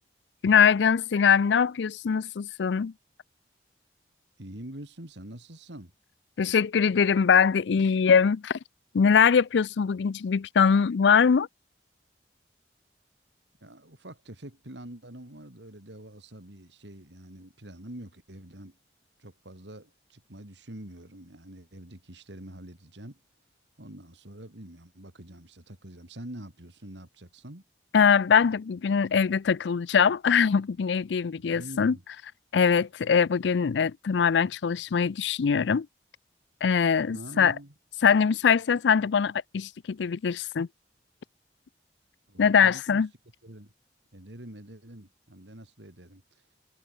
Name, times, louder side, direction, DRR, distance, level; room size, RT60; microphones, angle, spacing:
voice 1, 0.4-2.9 6.4-8.6 8.9-11.5 27.9-31.9 32.5-35.9 36.6-37.5 38.0-40.7 42.4-43.1, left 6 dB, 85° left, 0.4 m, -22 dB
voice 2, 4.4-5.9 13.6-18.8 19.2-23.2 23.8-27.6 31.4-32.0 37.1-37.7 42.3-43.0 43.4-43.7 44.1-46.2, right 1 dB, 85° right, 3.6 m, -45 dB
head